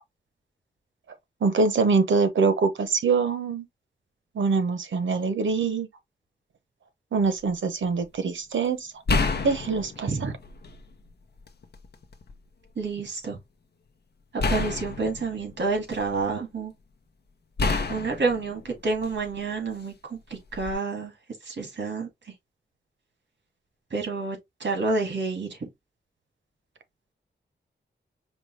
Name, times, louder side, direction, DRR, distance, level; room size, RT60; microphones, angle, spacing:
voice 1, 1.4-3.6 4.3-5.9 7.1-8.9 9.4-10.3, right 4 dB, 85° right, 0.9 m, -24 dB
sound 1, 7.2-7.5 9.1-10.9 11.4-12.3 14.4-16.3 17.6-19.4 20.5-20.7, left 3 dB, 60° left, 0.8 m, -29 dB
voice 2, 12.8-13.4 14.5-16.7 17.9-21.1 21.5-22.1 23.9-25.6, right 3 dB, 70° right, 1.9 m, -29 dB
5.2 x 2.3 x 3.2 m
wide cardioid pair, 100°, 19 cm